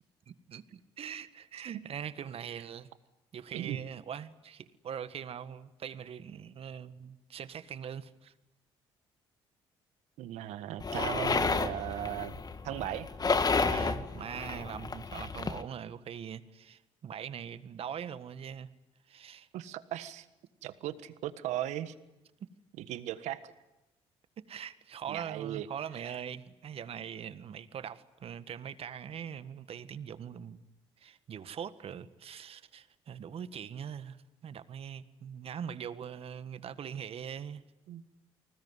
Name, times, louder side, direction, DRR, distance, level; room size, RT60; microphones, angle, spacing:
voice 1, 0.3-2.9 3.3-8.3 13.5-18.7 19.1-19.5 24.4-30.6 31.0-34.2 34.4-37.6, right 8 dB, 55° right, 1.6 m, -42 dB
voice 2, 10.2-13.1 19.5-20.3 20.6-21.9 22.8-23.5 25.1-25.7 26.0-26.2 37.9-38.0, right 13 dB, 75° right, 1.5 m, -37 dB
sound 1, 10.8-15.6, left 4 dB, 35° left, 2.0 m, -31 dB
29.5 x 20.0 x 9.7 m
supercardioid pair, 60°, 12 cm